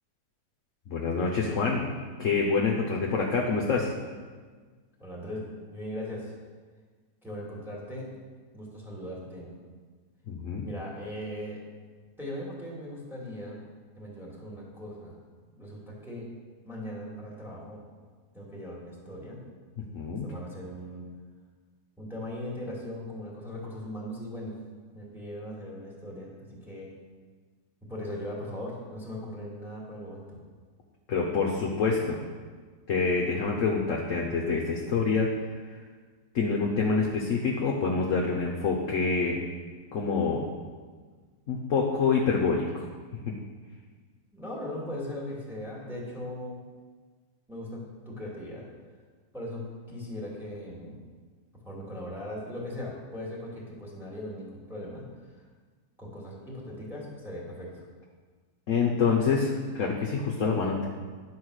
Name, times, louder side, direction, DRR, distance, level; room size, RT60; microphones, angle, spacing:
voice 1, 0.9-1.9 2.2-3.9 10.3-10.6 19.9-20.3 31.1-32.2 32.9-35.3 36.3-39.4 39.9-40.5 41.5-42.9 43.2-43.3 58.7-60.9, left 4 dB, 55° left, -1 dB, 1.1 m, -26 dB
voice 2, 5.0-6.3 7.2-8.1 8.5-9.5 10.6-11.6 12.2-13.6 14.0-15.2 15.5-16.3 16.7-17.8 18.3-19.4 20.2-21.1 22.0-24.5 24.9-26.9 27.9-30.4 44.3-46.6 47.5-48.6 49.3-51.0 51.6-55.4 56.0-57.8, left 1 dB, ahead, -4 dB, 2.2 m, -39 dB
10.5 x 4.8 x 6.4 m, 1.5 s
omnidirectional pair, 1.9 m